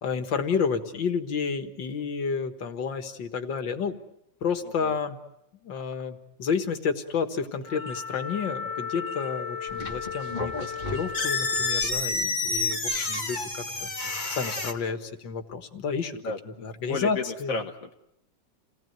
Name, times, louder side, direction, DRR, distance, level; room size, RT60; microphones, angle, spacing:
voice 1, 0.0-4.0 4.4-5.2 5.6-16.2 16.6-17.6, left 5 dB, 75° left, 8 dB, 2.4 m, -30 dB
voice 2, 4.6-4.9 16.1-17.9, left 4 dB, 50° left, 2 dB, 1.6 m, -34 dB
Wind instrument woodwind instrument, 7.6-11.9, left 5 dB, 10° right, 0.7 m, -35 dB
sound 1, 7.6-8.1 9.0-9.4 9.9-10.6 10.8-11.3, equal, 85° right, 3.6 m, -51 dB
sound 2, 9.7-14.7, left 3 dB, 25° left, 2.0 m, -29 dB
29.5 x 18.5 x 9.4 m, 0.84 s
omnidirectional pair, 2.0 m